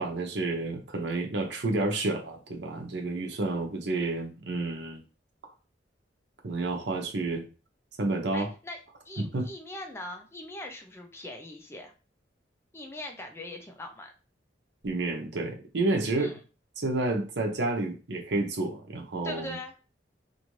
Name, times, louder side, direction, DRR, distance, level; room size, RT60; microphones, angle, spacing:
voice 1, 0.0-5.0 6.4-7.4 8.0-8.5 9.2-9.5 14.8-16.4 16.8-19.6, right 2 dB, 75° right, 2 dB, 0.8 m, -30 dB
voice 2, 8.3-8.8 9.0-11.9 12.7-14.1 16.2-16.4 19.2-19.7, left 1 dB, 15° left, 3 dB, 0.5 m, -41 dB
2.6 x 2.5 x 3.0 m, 0.34 s
head